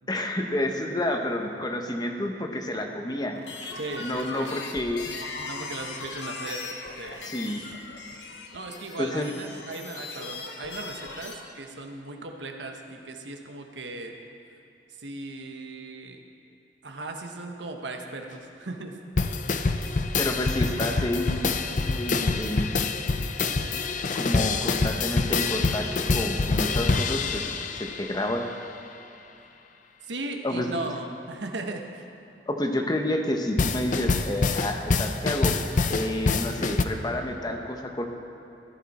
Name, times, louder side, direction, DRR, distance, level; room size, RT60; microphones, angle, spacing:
voice 1, 0.1-3.4 4.0-5.0 7.2-7.6 9.0-9.3 20.2-21.5 21.9-22.8 24.1-27.5 28.0-28.5 30.4-30.7 32.5-35.6 35.9-38.0, left 1 dB, 25° left, 3 dB, 0.9 m, -29 dB
sound 1, 3.3-11.3, left 3 dB, 75° left, 1.2 m, -39 dB
voice 2, 3.7-4.5 5.4-6.6 7.0-7.2 8.5-14.1 14.5-14.6 15.0-16.2 16.8-19.0 19.2-19.3 30.0-32.1, right 2 dB, 90° right, 4 dB, 1.1 m, -37 dB
sound 2, 19.2-28.3 33.6-36.8, left 4 dB, 45° left, 0.5 m, -26 dB
14.5 x 11.0 x 4.3 m, 2.9 s
head